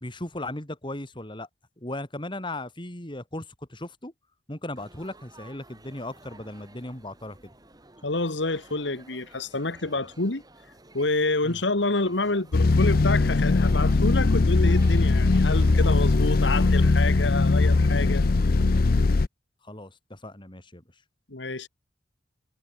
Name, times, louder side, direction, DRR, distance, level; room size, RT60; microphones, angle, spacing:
voice 1, 0.0-1.5 1.8-4.1 4.5-7.5 11.4-11.6 19.6-20.8, left 1 dB, 25° left, 3.3 m, -37 dB
Laughter / Chatter / Crowd, 4.8-16.9, right 2 dB, 20° right, 5.3 m, -52 dB
voice 2, 8.0-10.4 10.9-18.3 21.3-21.7, left 2 dB, 75° left, 2.0 m, -28 dB
sound 1, 12.5-19.3, left 3 dB, 55° left, 0.6 m, -20 dB
head